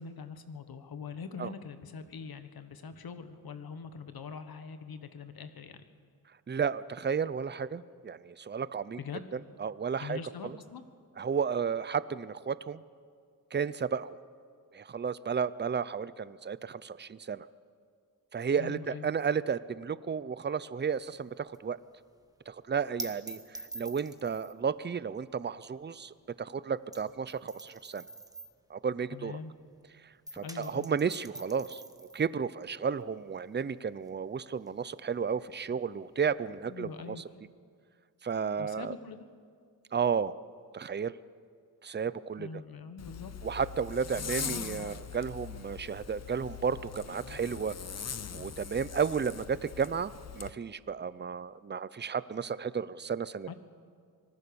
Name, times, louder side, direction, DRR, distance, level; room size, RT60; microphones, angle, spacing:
voice 1, 0.0-5.8 9.0-9.3 10.0-10.8 18.6-19.1 29.1-29.5 30.4-30.9 36.7-37.4 38.6-39.3 42.4-43.3 44.1-45.0 53.5-53.6, left 5 dB, 75° left, 10 dB, 1.4 m, -43 dB
voice 2, 6.5-9.0 9.6-10.5 11.2-12.8 13.5-14.2 14.7-17.5 18.3-21.8 22.5-28.0 28.7-29.4 30.3-37.2 38.2-38.9 39.9-40.3 40.7-41.1 41.8-42.5 43.4-47.7 48.3-53.5, right 6 dB, 30° right, 17 dB, 0.6 m, -33 dB
sound 1, 21.0-29.8 30.1-37.3, right 2 dB, 10° right, 1.5 m, -48 dB
Zipper (clothing), 43.0-50.5, left 7 dB, 45° left, 0.8 m, -41 dB
25.5 x 18.5 x 7.0 m, 2.1 s
wide cardioid pair, 100°, 36 cm